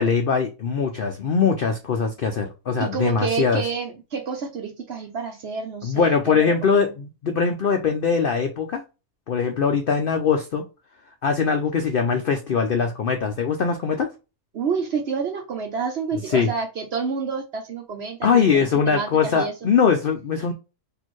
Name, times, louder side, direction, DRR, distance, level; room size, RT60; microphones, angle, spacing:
voice 1, 0.0-3.6 5.8-8.8 9.3-10.6 11.2-14.1 16.2-16.5 18.2-20.5, left 6 dB, 75° left, 0.5 m, -21 dB
voice 2, 2.8-6.9 14.5-19.5, right 5 dB, 55° right, 0.7 m, -29 dB
4.2 x 2.8 x 3.0 m
omnidirectional pair, 1.6 m